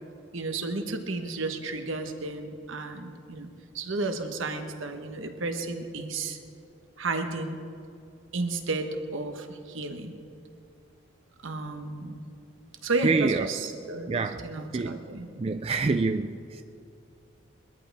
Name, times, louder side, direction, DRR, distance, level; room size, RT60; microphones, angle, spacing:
voice 1, 0.3-3.5 3.7-6.4 7.0-7.6 8.3-10.1 11.4-12.2 12.8-15.5, right 3 dB, 80° right, 6 dB, 1.2 m, -32 dB
voice 2, 13.0-13.5 14.1-15.1 15.4-16.6, right 4 dB, 30° right, 8 dB, 0.3 m, -27 dB
21.5 x 13.5 x 3.4 m, 2.5 s
head